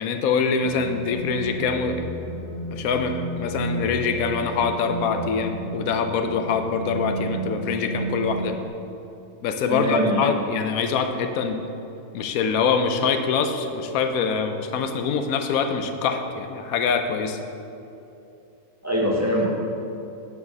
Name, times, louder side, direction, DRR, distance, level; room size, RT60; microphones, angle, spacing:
voice 1, 0.0-2.0 2.7-8.6 9.4-11.6 12.1-17.4, left 5 dB, 85° left, 7 dB, 1.1 m, -24 dB
sound 1, 0.6-8.7, right 1 dB, 70° left, 1.6 m, -32 dB
voice 2, 9.7-10.2 18.8-19.5, equal, 15° right, -3 dB, 0.7 m, -22 dB
8.5 x 4.8 x 5.2 m, 2.7 s
omnidirectional pair, 1.4 m